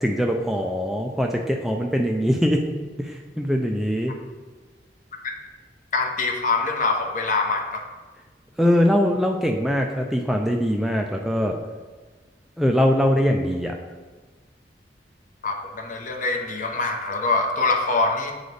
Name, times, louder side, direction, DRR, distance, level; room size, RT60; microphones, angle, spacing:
voice 1, 0.0-2.7 3.0-4.1 8.6-11.6 12.6-13.7, equal, ahead, 2 dB, 0.3 m, -22 dB
voice 2, 5.9-7.8 15.4-18.3, left 3 dB, 45° left, 3 dB, 0.7 m, -24 dB
7.9 x 4.0 x 3.2 m, 1.3 s
head